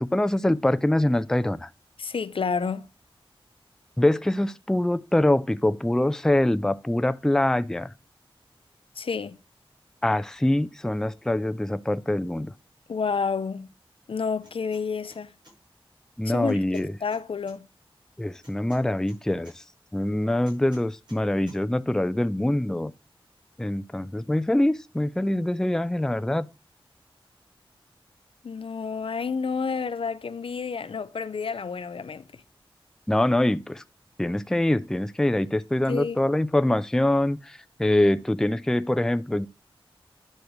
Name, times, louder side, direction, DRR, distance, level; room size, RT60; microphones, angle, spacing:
voice 1, 0.0-1.7 4.0-7.9 10.0-12.5 16.2-16.9 18.2-19.6 19.9-22.9 23.6-26.5 33.1-33.8 34.2-39.5, left 1 dB, 5° left, 0.4 m, -24 dB
voice 2, 2.0-2.9 9.0-9.4 12.9-13.7 14.1-15.3 16.2-17.7 28.4-32.4 35.9-36.2, left 5 dB, 70° left, 0.5 m, -30 dB
sound 1, 14.4-14.8 15.1-15.6 16.5-17.6 18.4-19.6 20.4-21.2 21.5-21.6, equal, 55° right, 5.8 m, -53 dB
10.5 x 6.4 x 3.2 m
wide cardioid pair, 65°, 10 cm